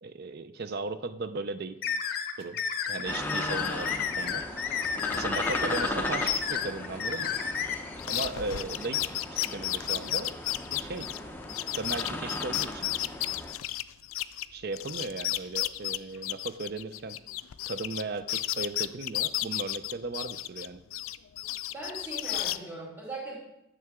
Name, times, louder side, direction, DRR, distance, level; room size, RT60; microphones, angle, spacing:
voice 1, 0.0-1.8 2.4-2.6 2.9-4.5 5.1-7.3 8.1-10.3 10.7-11.1 11.7-12.9 14.5-17.2 17.6-20.8, right 3 dB, 50° right, 11 dB, 0.5 m, -36 dB
sound 1, 1.8-7.7, left 7 dB, 50° left, 0.7 m, -31 dB
sound 2, 3.0-13.5, left 1 dB, 10° left, 0.7 m, -36 dB
sound 3, 8.0-14.5 14.7-18.0 18.3-20.7 20.9-22.6, left 15 dB, 90° left, 0.3 m, -32 dB
voice 2, 21.7-23.4, right 2 dB, 10° right, -7 dB, 3.1 m, -39 dB
9.4 x 6.9 x 3.6 m, 0.86 s
head